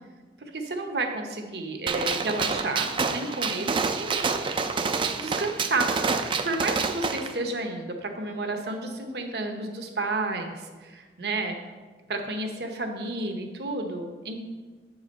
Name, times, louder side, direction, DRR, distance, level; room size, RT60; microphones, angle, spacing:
voice 1, 0.4-4.6 5.2-11.6 12.1-14.4, right 2 dB, 65° right, 4 dB, 1.0 m, -31 dB
Gunshot gunfire, 1.9-7.3, right 4 dB, 30° right, 0.4 m, -28 dB
8.2 x 4.8 x 5.4 m, 1.4 s
head